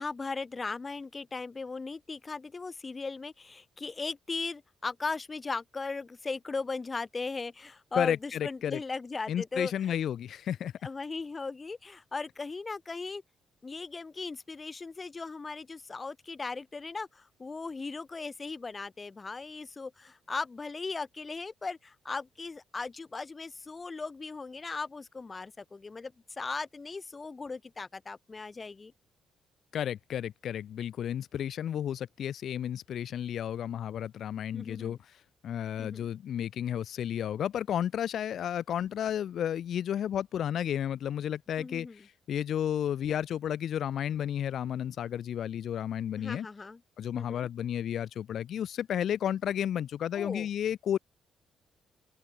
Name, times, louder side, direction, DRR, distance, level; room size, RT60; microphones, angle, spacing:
voice 1, 0.0-9.7 10.8-13.2 13.6-28.9 34.5-35.0 35.8-36.1 41.6-42.1 46.2-46.8 47.1-47.5 50.1-50.5, left 4 dB, 30° left, 1.3 m, -38 dB
voice 2, 8.0-8.8 9.3-10.7 29.7-46.5 47.0-51.0, left 10 dB, 65° left, 0.7 m, -32 dB
open air
cardioid pair, 90°, 0 cm